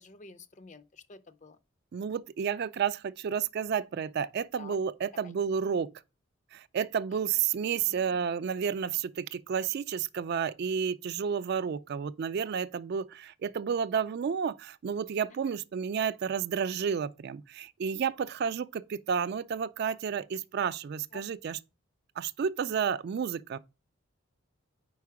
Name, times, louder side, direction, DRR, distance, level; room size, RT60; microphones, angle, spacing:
voice 1, 0.0-1.6 4.6-4.8 5.2-5.3 7.1-7.2 7.9-8.2 15.3-15.6 21.1-21.5, left 3 dB, 35° left, 0.5 m, -51 dB
voice 2, 1.9-5.9 6.5-21.6 22.2-23.6, right 7 dB, 50° right, 0.3 m, -31 dB
5.0 x 4.7 x 4.7 m
head